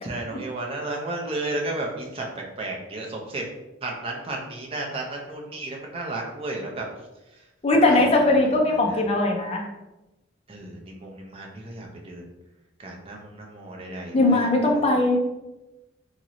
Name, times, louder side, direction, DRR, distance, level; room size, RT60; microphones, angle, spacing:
voice 1, 0.0-3.4 3.8-6.9 7.9-9.0 10.5-12.3 12.8-14.9, right 2 dB, 30° right, -1 dB, 0.5 m, -33 dB
voice 2, 7.6-9.6 14.1-15.2, left 2 dB, 30° left, 1 dB, 0.5 m, -20 dB
3.0 x 2.9 x 2.6 m, 1.0 s
head